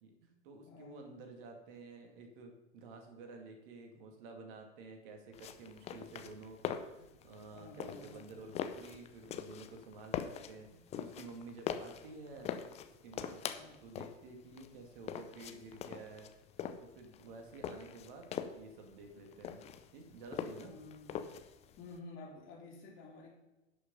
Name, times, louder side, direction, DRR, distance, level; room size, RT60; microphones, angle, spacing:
voice 1, 0.0-12.5 13.0-16.3 16.8-19.6 19.9-20.7, right 3 dB, 50° right, 4 dB, 2.3 m, -51 dB
voice 2, 0.6-1.1 7.5-8.5 13.4-13.8 14.5-14.7 20.6-21.3 21.8-23.3, left 3 dB, 35° left, -1 dB, 3.2 m, -52 dB
sound 1, 5.3-22.0, left 9 dB, 20° left, 0.6 m, -43 dB
11.0 x 6.2 x 5.5 m, 1.0 s
figure-of-eight pair, 105°, 36 cm